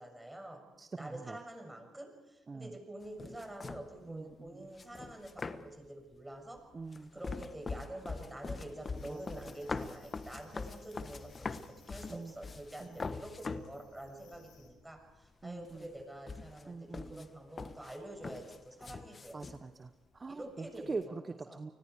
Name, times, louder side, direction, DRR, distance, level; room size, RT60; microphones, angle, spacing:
voice 1, 0.0-0.6 1.0-6.6 7.1-11.6 11.9-19.4 20.3-21.0 21.5-21.6, right 1 dB, 10° right, 4 dB, 6.6 m, -47 dB
voice 2, 0.8-1.4 2.5-2.7 4.1-4.7 6.7-7.1 9.1-9.2 12.1-12.3 12.8-13.0 15.4-15.9 16.7-17.3 19.3-21.7, right 4 dB, 35° right, 10 dB, 0.9 m, -43 dB
sound 1, 3.0-4.0 4.7-5.9 6.6-13.8 14.3-14.4 14.7-15.4 15.7-19.6, left 4 dB, 35° left, 1.2 m, -43 dB
sound 2, 8.9-14.7, left 5 dB, 80° left, 4.4 m, -62 dB
29.5 x 20.5 x 4.8 m, 1.1 s
supercardioid pair, 60°, 0 cm